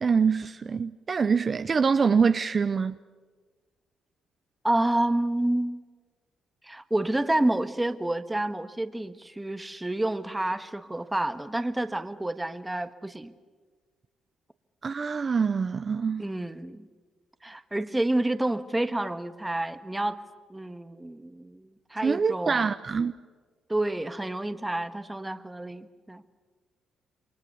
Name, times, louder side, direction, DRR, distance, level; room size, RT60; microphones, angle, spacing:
voice 1, 0.0-3.0 14.8-16.3 22.0-23.1, right 5 dB, 40° right, 0.7 m, -25 dB
voice 2, 4.6-5.8 6.6-13.3 16.2-16.9 17.4-20.2 20.5-22.7 23.7-26.2, right 1 dB, 10° right, 1.5 m, -29 dB
29.0 x 24.0 x 7.0 m
cardioid pair, 90°, 0 cm